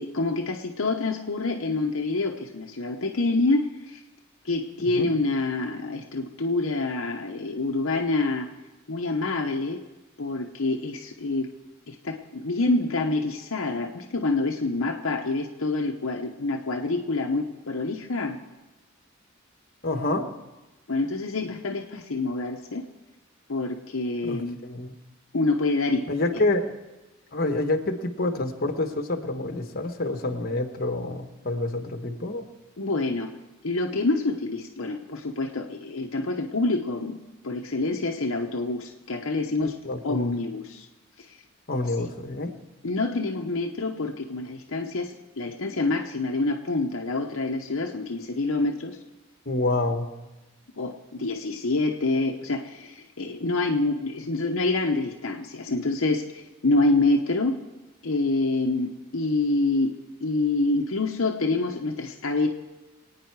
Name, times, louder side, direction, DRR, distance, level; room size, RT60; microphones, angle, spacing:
voice 1, 0.0-4.0 4.4-8.5 8.9-9.8 10.2-11.5 11.9-18.4 20.9-22.8 23.5-24.6 25.3-26.0 26.3-26.4 32.8-33.3 33.6-37.2 37.4-39.8 40.0-40.9 41.2-41.3 42.8-49.0 50.8-57.6 58.0-59.9 60.2-62.5, left 2 dB, 65° left, 2 dB, 0.9 m, -27 dB
voice 2, 19.8-20.3 24.2-24.9 26.1-26.7 27.3-32.4 39.6-40.3 41.7-42.5 49.4-50.1, left 2 dB, 45° left, 6 dB, 1.2 m, -27 dB
25.0 x 9.2 x 4.7 m, 1.1 s
head